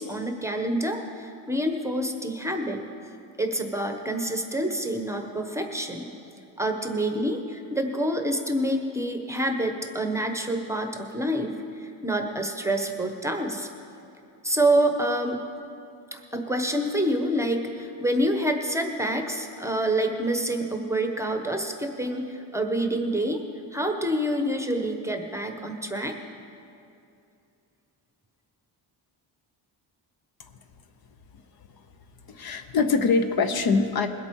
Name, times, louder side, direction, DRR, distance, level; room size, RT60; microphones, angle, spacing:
voice 1, 0.0-2.8 3.4-6.1 6.6-13.7 14.4-15.4 16.1-23.4 23.7-26.2, right 1 dB, 5° right, 4 dB, 0.9 m, -27 dB
voice 2, 32.3-34.1, left 4 dB, 55° left, 8 dB, 0.8 m, -23 dB
21.0 x 8.2 x 4.6 m, 2.6 s
wide cardioid pair, 140°, 44 cm